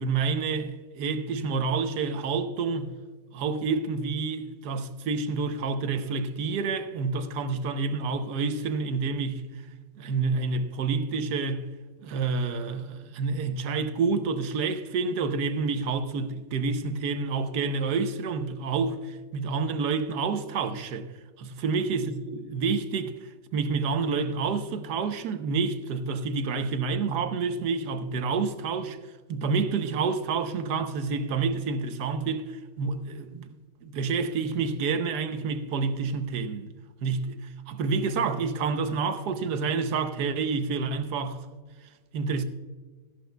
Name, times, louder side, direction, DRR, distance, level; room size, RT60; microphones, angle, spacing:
voice 1, 0.0-2.9 3.3-9.5 10.0-11.7 12.0-21.1 21.4-29.0 29.3-33.6 33.8-36.7 37.0-41.5 42.1-42.4, right 4 dB, 75° right, 1.4 m, -28 dB
16.0 x 11.5 x 2.2 m
omnidirectional pair, 1.8 m